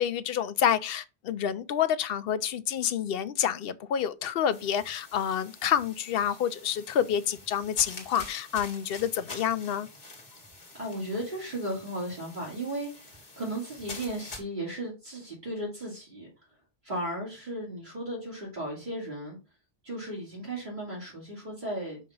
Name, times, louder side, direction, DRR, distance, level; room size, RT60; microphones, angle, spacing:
voice 1, 0.0-9.9, left 9 dB, 65° left, 0.7 m, -28 dB
sound 1, 4.5-14.4, left 2 dB, 45° left, 1.7 m, -47 dB
voice 2, 10.8-16.3 16.8-19.4 19.8-22.0, right 1 dB, 50° right, 2.5 m, -35 dB
6.3 x 2.9 x 5.2 m
omnidirectional pair, 1.1 m